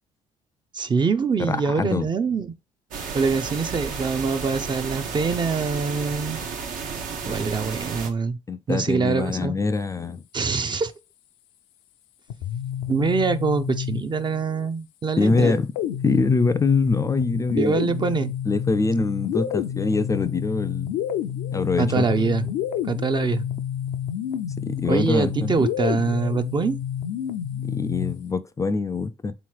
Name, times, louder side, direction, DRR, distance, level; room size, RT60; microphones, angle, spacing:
voice 1, 0.7-2.5 3.1-6.4 7.3-8.4 8.7-9.6 10.3-10.9 12.9-15.6 17.6-18.3 21.8-22.5 22.8-23.4 24.9-26.8, right 5 dB, 30° right, 0.5 m, -24 dB
voice 2, 1.4-2.1 8.5-10.2 15.2-15.7 16.0-17.8 18.5-20.9 21.5-22.1 24.6-25.5 27.6-29.3, left 3 dB, 20° left, 0.4 m, -24 dB
sound 1, 2.9-8.1, right 5 dB, 70° right, 0.8 m, -32 dB
sound 2, 12.3-14.4 15.4-28.3, left 10 dB, 80° left, 0.4 m, -29 dB
3.5 x 3.0 x 4.5 m
supercardioid pair, 60°, 14 cm